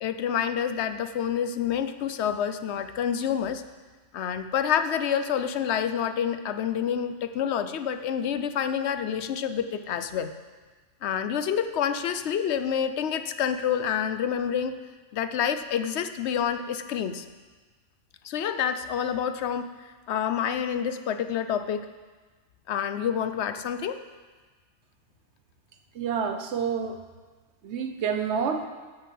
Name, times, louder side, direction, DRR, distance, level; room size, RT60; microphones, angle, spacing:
voice 1, 0.0-3.6 4.1-10.3 11.0-14.7 15.1-17.2 18.2-21.9 22.7-24.0, left 8 dB, 65° left, 10 dB, 0.9 m, -28 dB
voice 2, 25.9-27.0 27.6-28.7, right 6 dB, 65° right, 6 dB, 1.1 m, -28 dB
8.0 x 6.9 x 7.6 m, 1.4 s
omnidirectional pair, 1.3 m